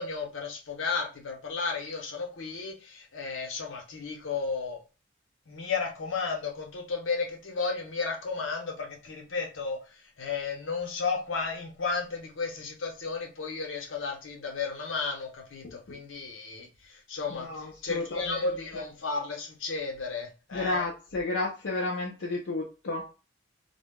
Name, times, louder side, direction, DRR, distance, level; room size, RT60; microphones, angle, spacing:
voice 1, 0.0-4.8 5.5-20.8, left 4 dB, 85° left, 1 dB, 0.8 m, -33 dB
voice 2, 15.6-16.0 17.3-18.5 18.7-18.8 20.5-23.1, left 2 dB, 70° left, -2 dB, 0.5 m, -32 dB
2.2 x 2.0 x 3.5 m, 0.32 s
head